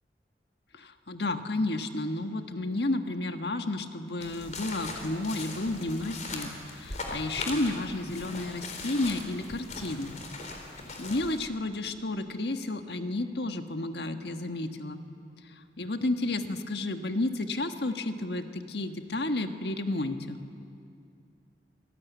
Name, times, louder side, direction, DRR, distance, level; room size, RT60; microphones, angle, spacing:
voice 1, 0.7-10.2 11.0-15.0 15.8-20.4, left 2 dB, 75° left, 6 dB, 1.5 m, -31 dB
sound 1, 4.2-11.4, left 3 dB, 45° left, 4.0 m, -40 dB
27.0 x 19.0 x 9.4 m, 2.4 s
head